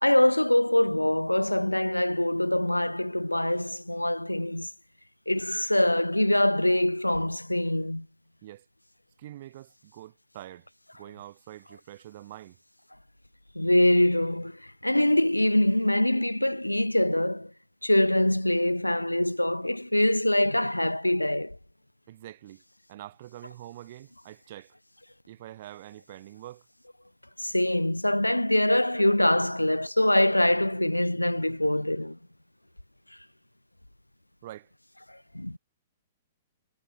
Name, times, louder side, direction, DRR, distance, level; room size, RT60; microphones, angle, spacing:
voice 1, 0.0-4.7 5.3-8.1 13.6-17.5 17.8-21.6 27.4-32.2 35.1-35.6, left 1 dB, 85° left, 2.0 m, -24 dB
voice 2, 9.2-10.7 10.9-12.6 22.1-22.6 22.9-24.8 25.3-26.7 34.4-34.7, right 14 dB, 45° right, 5.6 m, -45 dB
figure-of-eight pair, 110°, 0 cm